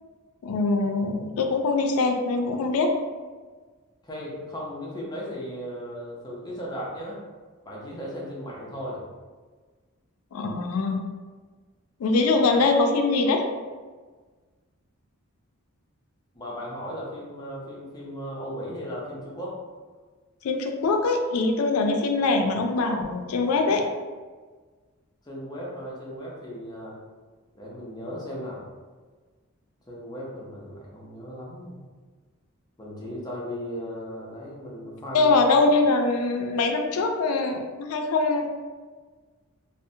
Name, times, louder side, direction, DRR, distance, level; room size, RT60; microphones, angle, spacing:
voice 1, 0.4-2.9 10.3-11.0 12.0-13.4 20.4-23.8 35.1-38.5, left 3 dB, 85° left, 4 dB, 0.3 m, -23 dB
voice 2, 4.0-7.2 7.6-9.0 16.3-19.5 25.2-27.0 27.5-28.6 29.9-31.7 32.8-35.3, equal, 20° left, -4 dB, 0.5 m, -36 dB
2.6 x 2.0 x 2.6 m, 1.4 s
head